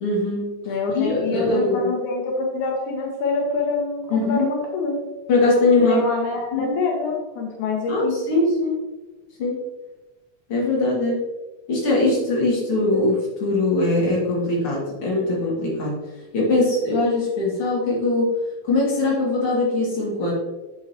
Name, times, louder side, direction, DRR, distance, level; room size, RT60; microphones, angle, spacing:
voice 1, 0.0-0.6 0.9-1.9 4.1-4.5 5.3-6.0 6.5-6.8 7.9-8.8 9.4-9.6 10.5-11.2 11.7-13.1 13.4-16.0 16.3-18.3 18.6-20.3, left 2 dB, 50° left, -5 dB, 2.9 m, -21 dB
voice 2, 0.7-4.9 5.8-8.1, left 3 dB, 80° left, 0 dB, 2.5 m, -25 dB
8.2 x 7.1 x 2.9 m, 1.2 s
omnidirectional pair, 3.5 m